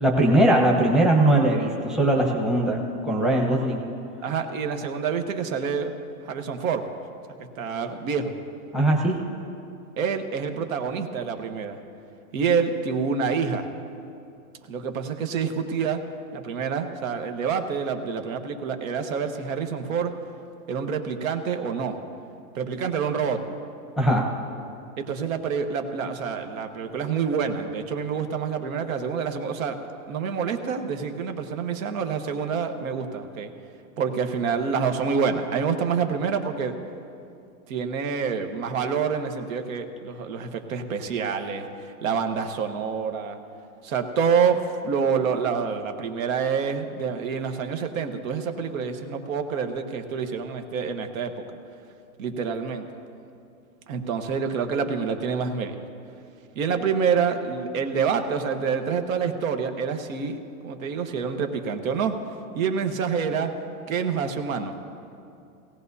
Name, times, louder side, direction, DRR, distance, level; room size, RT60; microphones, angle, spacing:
voice 1, 0.0-2.8 3.0-3.8 8.7-9.1 24.0-24.2, right 1 dB, ahead, -2 dB, 0.9 m, -20 dB
voice 2, 4.2-5.9 6.2-6.8 7.4-8.3 10.0-11.8 12.3-13.7 14.7-16.0 16.3-20.1 20.7-22.0 22.5-23.6 25.0-29.8 30.1-33.5 34.0-36.7 37.7-43.4 43.8-51.4 52.2-52.9 53.9-55.7 56.6-60.4 60.6-62.1 62.5-63.5 63.9-64.7, right 6 dB, 60° right, 6 dB, 1.3 m, -27 dB
18.0 x 17.0 x 2.7 m, 2.6 s
hypercardioid pair, 145°, 45 cm